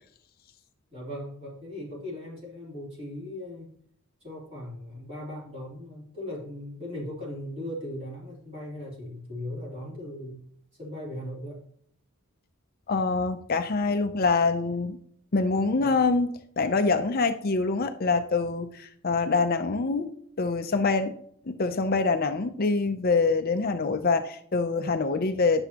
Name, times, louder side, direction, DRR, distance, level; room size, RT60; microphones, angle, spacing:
voice 1, 0.9-3.7 4.2-10.4 10.8-11.6 15.8-16.0, left 1 dB, 30° right, -5 dB, 3.1 m, -38 dB
voice 2, 12.9-15.0 15.3-16.3 16.6-21.2 21.5-25.6, left 4 dB, 45° left, 8 dB, 0.5 m, -25 dB
10.5 x 6.9 x 2.9 m, 0.64 s
head